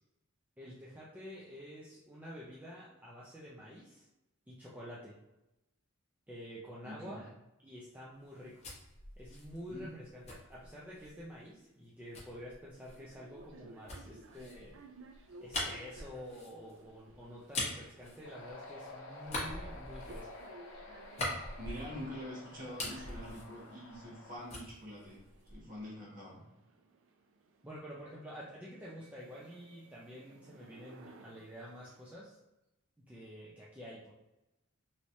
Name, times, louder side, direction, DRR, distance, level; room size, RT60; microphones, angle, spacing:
voice 1, 0.6-4.1 4.5-5.1 6.3-7.3 7.6-8.5 9.2-14.7 15.4-20.3 27.6-32.4 33.1-34.1, equal, 10° right, -7 dB, 0.5 m, -49 dB
voice 2, 6.8-7.2 9.7-9.9 21.6-25.2 25.5-26.4, equal, 40° right, -5 dB, 1.3 m, -45 dB
sound 1, 8.2-11.2 12.1-18.8 19.2-22.2 22.5-24.2 24.5-25.8, left 1 dB, 30° left, 0.9 m, -43 dB
sound 2, 13.0-32.2, right 3 dB, 65° right, 0.4 m, -59 dB
sound 3, 18.2-24.4, left 2 dB, 70° left, 0.7 m, -51 dB
3.1 x 3.0 x 2.7 m, 0.94 s
head